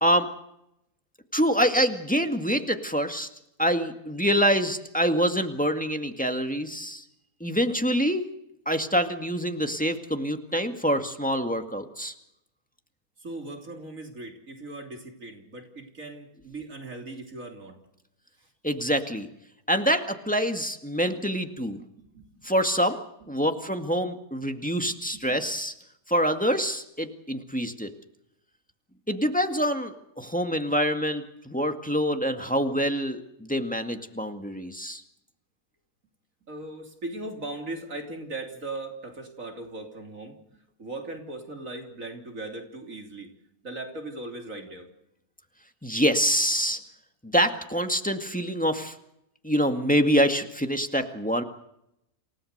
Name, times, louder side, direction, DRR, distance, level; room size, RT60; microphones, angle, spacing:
voice 1, 1.3-3.3 3.6-7.0 7.4-8.2 8.7-12.1 18.6-19.3 19.7-21.8 22.4-25.7 26.1-27.9 29.1-35.0 45.8-46.8 47.2-49.0 49.4-51.4, equal, 5° left, 6 dB, 1.9 m, -26 dB
voice 2, 13.2-17.8 22.0-22.5 23.4-23.5 23.8-23.9 24.8-24.9 25.3-25.4 36.5-43.3 43.6-44.9, right 2 dB, 60° right, 3 dB, 3.6 m, -39 dB
28.5 x 17.5 x 6.7 m, 0.80 s
omnidirectional pair, 1.6 m